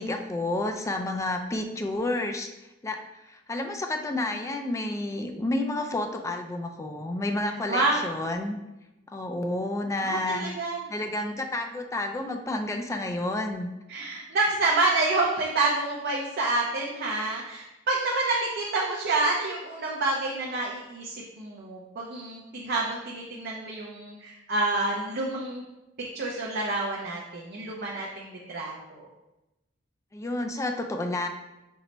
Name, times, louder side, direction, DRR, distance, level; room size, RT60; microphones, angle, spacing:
voice 1, 0.0-2.5 2.8-3.0 3.3-8.6 9.1-10.4 10.9-13.7 30.1-31.3, left 2 dB, 15° left, 4 dB, 0.3 m, -30 dB
voice 2, 7.7-8.0 10.0-10.8 13.9-25.6 26.1-29.1, right 2 dB, 55° right, -3 dB, 0.5 m, -28 dB
4.5 x 2.1 x 3.9 m, 0.97 s
head